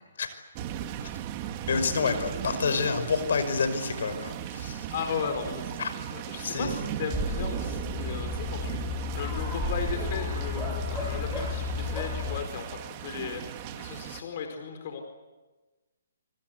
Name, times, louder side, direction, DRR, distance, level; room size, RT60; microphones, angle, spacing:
sound 1, 0.6-14.2, right 10 dB, 30° right, 2.1 m, -37 dB
voice 1, 1.7-4.9 5.8-5.9 6.4-6.8, left 5 dB, 65° left, 10 dB, 5.6 m, -28 dB
voice 2, 4.9-15.0, left 6 dB, 45° left, 5 dB, 4.6 m, -36 dB
sound 2, 7.1-12.4, left 3 dB, ahead, 6.7 m, -32 dB
27.0 x 25.5 x 8.3 m, 1.2 s
hypercardioid pair, 150°, 0 cm